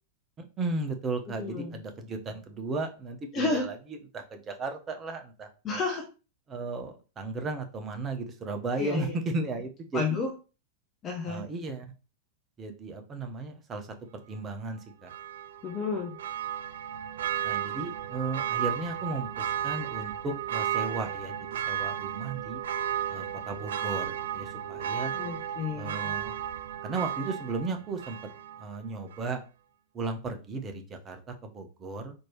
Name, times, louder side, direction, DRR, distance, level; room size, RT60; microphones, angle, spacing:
voice 1, 0.6-3.8 4.1-5.8 6.5-10.2 11.3-11.9 12.6-13.9 14.3-15.1 17.4-22.6 23.1-25.1 25.7-26.3 26.8-28.2 28.6-29.4 29.9-32.1, right 3 dB, 25° right, 5 dB, 0.9 m, -35 dB
voice 2, 1.4-1.8 3.3-3.7 5.6-6.0 8.8-9.2 9.9-10.3 11.0-11.4 15.6-16.2 25.1-26.1, left 4 dB, 25° left, 2 dB, 0.9 m, -31 dB
Church bell, 15.1-28.7 29.1-29.2, right 10 dB, 60° right, 0.3 m, -34 dB
4.4 x 3.0 x 3.1 m, 0.32 s
figure-of-eight pair, 90°, 0 cm